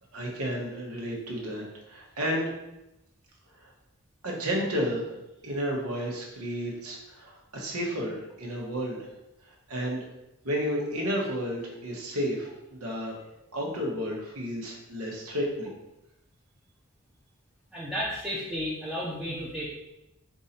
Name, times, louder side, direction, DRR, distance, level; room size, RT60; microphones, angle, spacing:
voice 1, 0.1-2.5 3.6-3.7 4.2-5.0 5.4-9.1 9.4-10.1 10.4-13.1 13.5-15.8, equal, 90° right, -2 dB, 1.2 m, -32 dB
voice 2, 17.7-19.7, equal, ahead, -7 dB, 0.5 m, -33 dB
4.7 x 2.7 x 4.2 m, 0.91 s
head